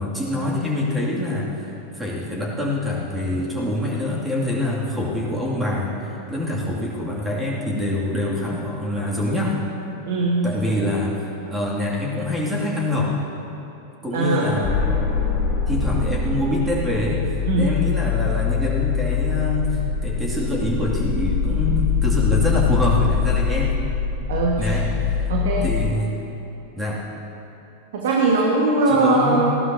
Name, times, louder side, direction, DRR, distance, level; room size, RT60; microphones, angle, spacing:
voice 1, 0.0-9.6 10.4-13.2 14.0-14.8 15.7-17.3 17.6-23.7 24.6-25.3 25.6-26.2 26.7-27.0 28.9-29.5, left 1 dB, 10° right, -4 dB, 2.4 m, -25 dB
voice 2, 10.0-10.8 14.1-14.5 17.4-17.7 24.3-24.8 25.3-25.7 27.9-29.5, right 3 dB, 55° right, -2 dB, 1.6 m, -20 dB
sound 1, 14.6-25.9, left 6 dB, 20° left, 3.0 m, -23 dB
19.5 x 16.0 x 2.8 m, 2.9 s
figure-of-eight pair, 90°, 0 cm